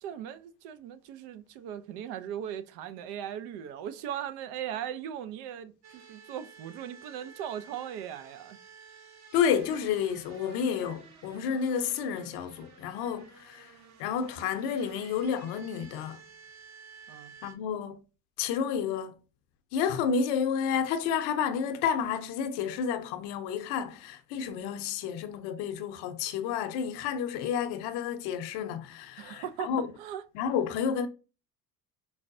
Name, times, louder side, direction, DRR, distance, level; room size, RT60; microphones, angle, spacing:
voice 1, 0.0-8.6 17.1-17.3 29.2-29.7 30.0-30.2, right 9 dB, 65° right, 0.5 m, -38 dB
sound 1, 5.8-17.6, right 5 dB, 40° right, 0.9 m, -53 dB
voice 2, 9.3-13.7 14.0-16.2 17.4-18.0 18.4-19.2 19.7-29.9 30.3-31.1, left 7 dB, 65° left, 0.7 m, -30 dB
4.6 x 2.1 x 2.5 m
hypercardioid pair, 70°, 44 cm